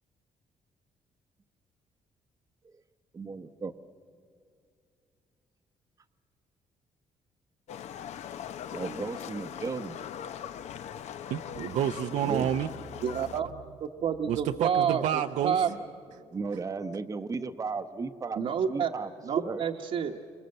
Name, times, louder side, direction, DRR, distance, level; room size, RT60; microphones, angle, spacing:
voice 1, 3.1-3.7 8.7-10.0 12.2-12.5 16.3-19.6, right 4 dB, 25° right, 6 dB, 0.8 m, -35 dB
Livestock farm animals working animals, 7.7-13.4, left 9 dB, 70° left, 0.7 m, -40 dB
voice 2, 11.3-12.7 14.3-15.8, right 10 dB, 75° right, 6 dB, 0.6 m, -29 dB
voice 3, 13.0-13.5 13.8-15.0 15.4-15.7 18.4-18.9 19.2-20.2, right 8 dB, 60° right, 1 dB, 1.1 m, -28 dB
29.0 x 25.5 x 7.8 m, 2.3 s
cardioid pair, 115°, 12 cm